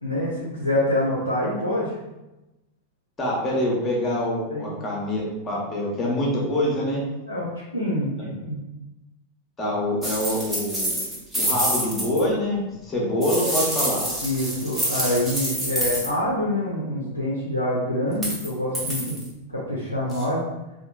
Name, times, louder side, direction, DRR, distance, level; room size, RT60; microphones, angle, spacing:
voice 1, 0.0-2.0 4.5-4.7 7.3-8.1 8.5-8.6 14.2-19.2 19.5-20.4, left 1 dB, 85° left, -6 dB, 0.5 m, -26 dB
voice 2, 3.2-7.0 9.6-10.9 11.4-14.0 19.0-19.1, left 1 dB, 20° left, -3 dB, 0.8 m, -25 dB
sound 1, 10.0-12.2 13.2-16.1 18.1-18.5 18.7-19.3 20.1-20.2, equal, 10° right, 0.8 m, -27 dB
2.9 x 2.2 x 2.2 m, 1.0 s
figure-of-eight pair, 90°, 0 cm